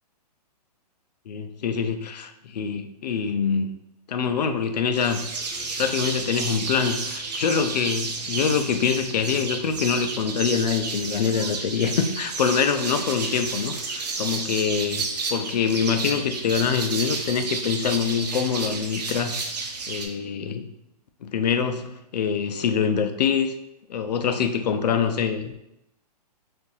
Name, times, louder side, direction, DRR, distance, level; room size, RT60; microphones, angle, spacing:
voice 1, 1.3-3.7 4.1-5.2 5.8-19.4 19.9-20.7 21.2-23.5 23.9-25.6, left 6 dB, 80° left, 8 dB, 0.4 m, -25 dB
sound 1, 4.9-20.1, right 4 dB, 75° right, 0.7 m, -31 dB
2.7 x 2.5 x 3.8 m, 0.85 s
hypercardioid pair, 165°, 21 cm